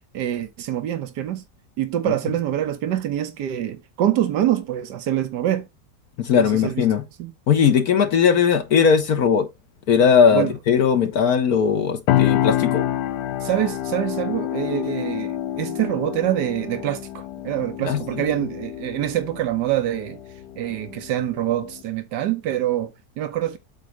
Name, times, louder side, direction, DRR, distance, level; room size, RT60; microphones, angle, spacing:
voice 1, 0.1-1.4 1.8-5.7 6.4-6.8 7.2-7.3 10.3-10.5 13.4-20.2 20.6-23.6, right 12 dB, 90° right, 1.5 m, -25 dB
voice 2, 6.2-7.0 7.5-9.5 9.9-12.9 17.8-18.0, left 7 dB, 65° left, 1.4 m, -18 dB
sound 1, 12.1-21.8, left 12 dB, 90° left, 1.2 m, -27 dB
8.3 x 3.0 x 6.3 m
omnidirectional pair, 1.8 m